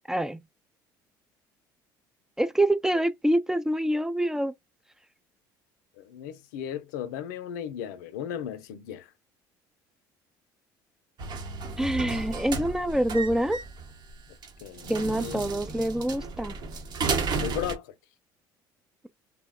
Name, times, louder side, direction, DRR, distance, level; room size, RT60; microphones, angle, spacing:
voice 1, 0.1-0.4 2.4-4.5 11.8-13.6 14.9-16.6, right 1 dB, 5° right, 0.3 m, -26 dB
voice 2, 6.0-9.1 14.6-15.4 17.4-17.9, left 9 dB, 90° left, 0.5 m, -36 dB
sound 1, 11.2-17.8, right 4 dB, 50° right, 0.8 m, -33 dB
2.7 x 2.1 x 2.2 m
supercardioid pair, 80°, 10 cm